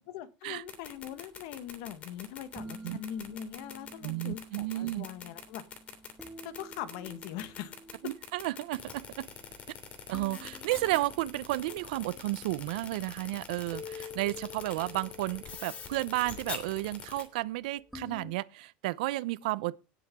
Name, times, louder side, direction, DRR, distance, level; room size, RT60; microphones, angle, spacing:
voice 1, 0.1-5.6 6.4-7.8 8.0-8.1, left 12 dB, 65° left, 1.5 m, -42 dB
sound 1, 0.6-17.2, left 7 dB, 30° left, 2.9 m, -43 dB
sound 2, 0.6-18.3, left 2 dB, ahead, 1.7 m, -50 dB
voice 2, 4.0-5.1 8.0-9.3 10.1-19.8, right 19 dB, 85° right, 0.6 m, -32 dB
18.5 x 7.6 x 3.7 m
cardioid pair, 160°, 4 cm